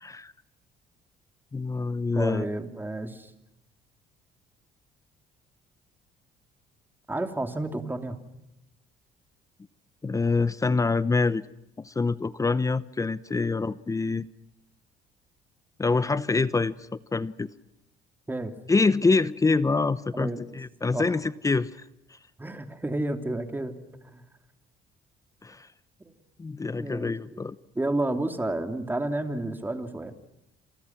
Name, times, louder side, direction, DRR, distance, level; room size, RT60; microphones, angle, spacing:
voice 1, 0.0-0.3 1.5-2.5 10.0-11.4 11.8-14.2 15.8-16.7 17.1-17.5 18.7-21.7 25.4-25.7 26.4-27.6, left 3 dB, 20° left, 17 dB, 0.9 m, -25 dB
voice 2, 2.1-3.3 7.1-8.2 18.3-18.5 20.1-20.4 20.9-21.1 22.4-24.2 26.0-26.1 26.8-27.4 27.7-30.1, right 2 dB, 10° right, 7 dB, 3.2 m, -31 dB
28.0 x 28.0 x 6.0 m, 0.87 s
cardioid pair, 110°, 17 cm